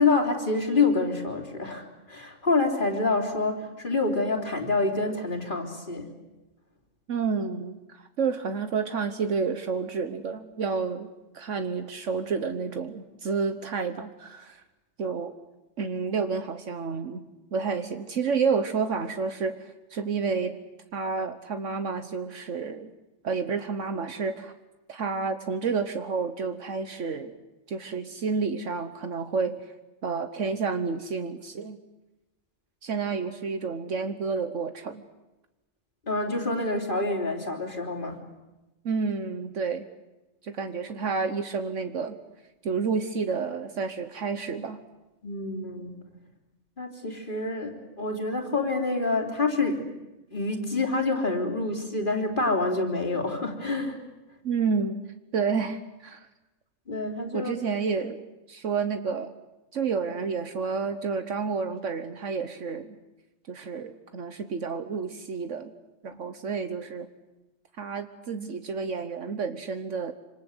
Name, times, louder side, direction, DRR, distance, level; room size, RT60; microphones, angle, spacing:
voice 1, 0.0-6.1 36.1-38.2 45.2-46.0 46.8-49.9 50.3-54.0 56.9-57.5, left 3 dB, 40° left, 2 dB, 3.7 m, -27 dB
voice 2, 7.1-11.1 11.3-14.6 15.0-15.3 15.8-17.2 17.5-20.6 20.9-22.9 23.2-24.5 24.9-27.3 27.7-29.6 30.0-31.8 32.8-35.0 38.8-39.8 40.4-42.2 42.6-44.8 54.4-55.0 55.3-56.3 57.3-58.2 58.5-59.3 59.7-63.0 63.5-65.7 66.0-67.1 67.8-70.1, right 5 dB, 70° right, 9 dB, 1.5 m, -30 dB
26.5 x 26.0 x 8.0 m, 1.0 s
omnidirectional pair, 1.3 m